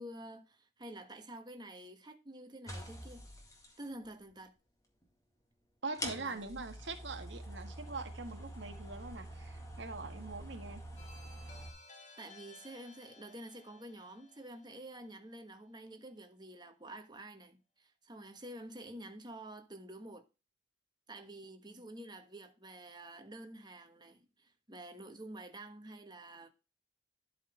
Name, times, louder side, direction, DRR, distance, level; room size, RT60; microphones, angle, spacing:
voice 1, 0.0-3.2 3.8-4.5 6.2-6.4 12.2-20.3 21.1-26.5, right 1 dB, 25° right, 1.4 m, -49 dB
sound 1, 2.7-3.7 5.0-5.1 5.9-11.7, equal, 20° left, 2.0 m, -46 dB
voice 2, 5.8-10.8 21.7-21.9, right 3 dB, 75° right, 1.6 m, -43 dB
sound 2, 11.0-15.7, left 3 dB, 35° left, 2.3 m, -58 dB
12.0 x 4.2 x 5.0 m
head